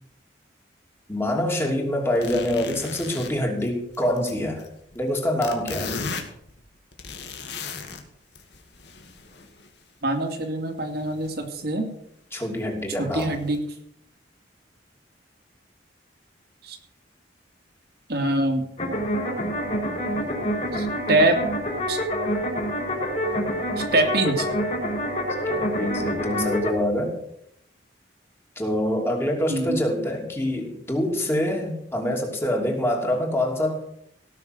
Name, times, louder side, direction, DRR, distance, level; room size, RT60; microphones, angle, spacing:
voice 1, 1.1-4.7 4.9-6.0 12.3-13.3 25.5-27.2 28.6-33.8, left 1 dB, 15° left, 1 dB, 2.9 m, -25 dB
sound 1, 2.1-5.1 5.4-8.0 8.3-9.7 11.0-11.4 11.7-11.8 12.4-12.5 13.2-13.6, left 4 dB, 65° left, 2.2 m, -36 dB
voice 2, 10.0-11.9 13.0-13.6 16.6-16.8 18.1-18.6 20.7-21.5 21.9-22.0 23.8-24.5 29.5-29.8, right 2 dB, 60° right, 4 dB, 2.6 m, -24 dB
sound 2, 18.8-26.7, equal, 35° left, 4.7 m, -27 dB
18.0 x 6.6 x 7.8 m, 0.74 s
head